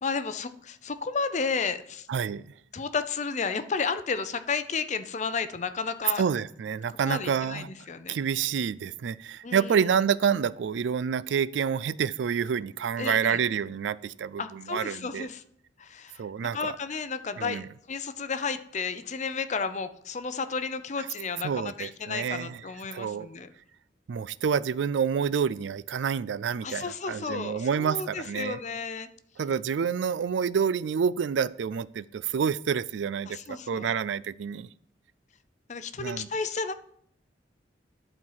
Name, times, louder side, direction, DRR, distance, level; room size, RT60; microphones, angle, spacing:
voice 1, 0.0-2.1 2.7-6.2 7.0-8.2 9.4-9.9 13.0-13.4 14.4-15.4 15.8-23.5 26.6-29.1 33.3-33.9 35.7-36.7, left 5 dB, 40° left, 12 dB, 0.6 m, -32 dB
voice 2, 2.1-2.5 6.2-7.7 8.1-15.3 16.2-16.7 17.4-17.7 21.4-22.6 22.9-23.3 24.1-28.6 29.4-34.7 36.0-36.3, right 7 dB, 80° right, 18 dB, 0.4 m, -28 dB
11.0 x 4.5 x 5.6 m, 0.67 s
head